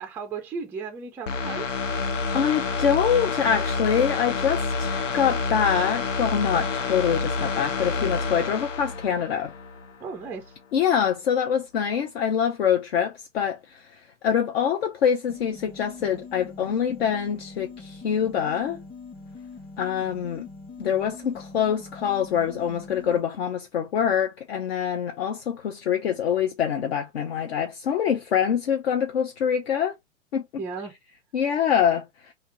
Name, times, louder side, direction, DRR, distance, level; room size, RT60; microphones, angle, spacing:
voice 1, 0.0-1.8 10.0-10.5 30.6-30.9, right 5 dB, 5° right, 0.4 m, -35 dB
sound 1, 1.3-9.9 10.3-10.4, left 4 dB, 85° left, 0.8 m, -28 dB
voice 2, 2.3-9.5 10.7-13.9 14.2-18.8 19.8-20.5 20.8-29.9 30.3-30.5 31.3-32.3, left 8 dB, 55° left, 0.9 m, -25 dB
sound 2, 15.3-23.2, left 4 dB, 15° left, 1.0 m, -43 dB
3.4 x 2.9 x 4.3 m
figure-of-eight pair, 105°, 37 cm